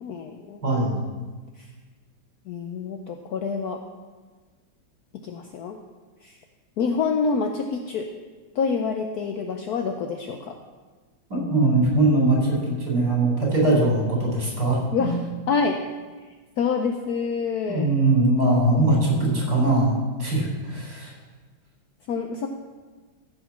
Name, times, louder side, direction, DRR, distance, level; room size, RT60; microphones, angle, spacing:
voice 1, 0.0-0.6 1.6-1.7 2.5-3.8 5.2-5.8 6.2-6.4 6.8-8.1 8.5-10.5 14.9-15.2 15.5-15.8 16.6-17.9 22.1-22.5, left 5 dB, 65° left, 4 dB, 1.1 m, -27 dB
voice 2, 0.6-0.9 11.3-15.1 17.7-21.1, right 2 dB, 55° right, -3 dB, 4.5 m, -21 dB
14.0 x 5.2 x 7.2 m, 1.4 s
omnidirectional pair, 2.1 m